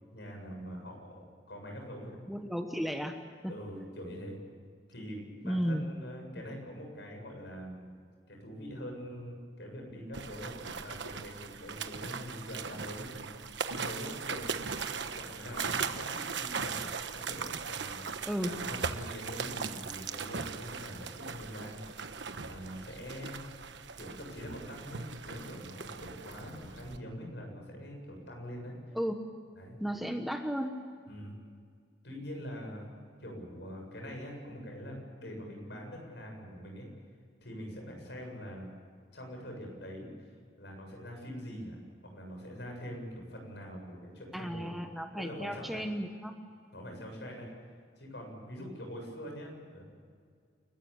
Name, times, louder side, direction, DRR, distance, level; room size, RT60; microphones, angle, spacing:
voice 1, 0.1-2.2 3.5-4.4 4.9-7.9 8.3-14.6 14.9-21.8 22.4-23.4 23.9-28.7 29.6-29.8 31.1-31.3 32.0-32.8 33.2-36.9 37.4-38.7 39.1-40.1 40.6-41.8 42.0-44.7 45.2-45.8 46.7-47.5 48.0-49.8, equal, 70° left, 2 dB, 7.6 m, -44 dB
voice 2, 2.3-3.8 5.4-5.8 18.2-18.5 28.9-29.2 29.8-30.8 44.3-46.3, equal, ahead, 5 dB, 1.2 m, -34 dB
sound 1, 10.1-27.0, right 5 dB, 85° right, 1.2 m, -39 dB
29.5 x 14.5 x 9.0 m, 2.1 s
head